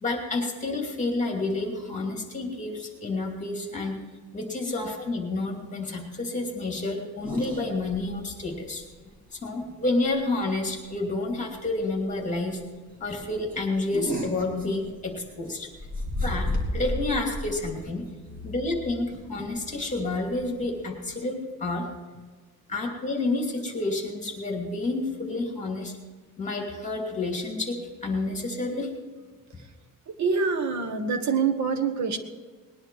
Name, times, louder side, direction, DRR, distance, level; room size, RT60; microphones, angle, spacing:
voice 1, 0.0-4.0 4.3-8.8 9.3-12.6 13.0-15.7 16.2-16.5 16.7-18.0 18.4-21.8 22.7-25.9 26.4-28.9, left 2 dB, 20° left, 1 dB, 2.7 m, -29 dB
sound 1, 7.2-8.0 8.4-8.5 8.8-8.9 10.1-10.4 10.7-10.9 11.4-11.5 11.8-11.9 12.3-12.5 13.0-15.3 15.7-21.0, left 1 dB, 25° right, 2.8 m, -33 dB
voice 2, 30.2-32.2, right 5 dB, 55° right, 7 dB, 1.5 m, -25 dB
20.0 x 10.5 x 4.7 m, 1.4 s
cardioid pair, 155°, 35 cm